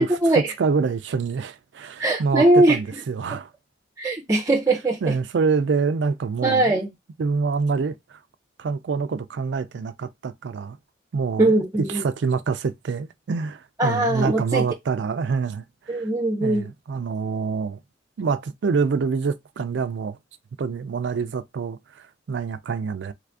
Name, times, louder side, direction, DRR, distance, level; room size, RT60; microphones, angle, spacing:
voice 1, 0.0-3.5 5.0-6.9 7.2-8.2 8.6-10.8 11.1-16.1 16.4-17.8 18.2-20.2 20.6-23.1, right 5 dB, 75° right, 0.4 m, -26 dB
voice 2, 2.0-2.8 4.0-5.1 6.4-6.9 11.4-12.0 13.8-14.6 15.9-16.7, right 2 dB, 20° right, 0.6 m, -20 dB
3.3 x 2.5 x 3.3 m
head